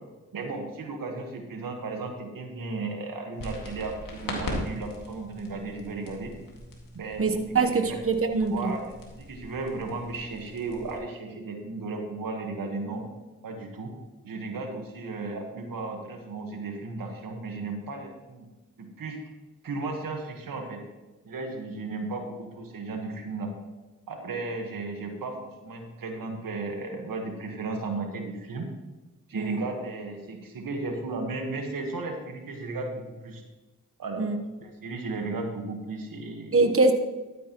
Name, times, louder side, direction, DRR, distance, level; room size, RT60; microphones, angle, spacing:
voice 1, 0.3-6.3 6.9-7.4 7.7-8.0 8.5-8.8 9.1-13.0 13.4-13.9 14.2-18.5 18.8-19.2 19.6-20.8 21.2-23.5 24.1-28.7 29.3-33.4 34.0-36.6, right 3 dB, 85° right, 3 dB, 1.5 m, -35 dB
sound 1, 3.4-11.0, left 2 dB, 80° left, 2.1 m, -40 dB
voice 2, 7.2-8.7 29.3-29.6 34.2-34.4 36.5-36.9, right 3 dB, 40° right, 6 dB, 1.1 m, -23 dB
12.5 x 9.2 x 3.0 m, 1.1 s
cardioid pair, 40°, 33 cm